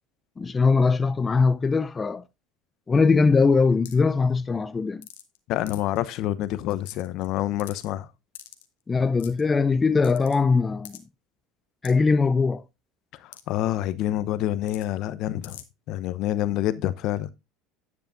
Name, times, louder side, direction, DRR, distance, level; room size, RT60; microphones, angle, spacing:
voice 1, 0.4-2.2 2.9-5.1 8.9-11.0 11.8-12.6, left 4 dB, 25° left, 0.6 m, -21 dB
sound 1, 3.9-4.1 5.0-5.4 5.7-6.0 6.4-6.5 6.7-7.3 7.6-7.9 8.3-8.7 9.2-9.4 10.0-10.4 10.8-11.0 11.8-11.9 13.3-13.4 13.7-13.8 14.7-14.9 15.4-15.6, left 13 dB, 85° left, 1.2 m, -43 dB
voice 2, 5.5-8.1 13.2-15.6 15.9-17.3, left 13 dB, 60° left, 0.8 m, -27 dB
10.0 x 8.5 x 2.6 m
hypercardioid pair, 85°, 0 cm